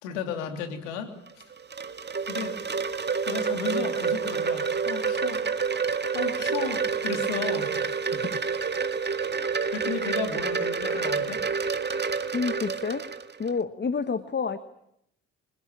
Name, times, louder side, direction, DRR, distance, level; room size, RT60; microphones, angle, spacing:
voice 1, 0.0-1.4 2.3-2.6 3.2-5.5 6.1-7.7 9.7-11.4, left 6 dB, 75° left, 6 dB, 3.2 m, -34 dB
Wind chime, 1.3-13.5, right 5 dB, 30° right, 1.9 m, -28 dB
voice 2, 8.1-8.4 9.2-9.5 12.3-13.0 13.4-14.6, left 5 dB, 30° left, 12 dB, 1.4 m, -29 dB
27.5 x 17.0 x 8.9 m, 0.76 s
figure-of-eight pair, 50°, 35 cm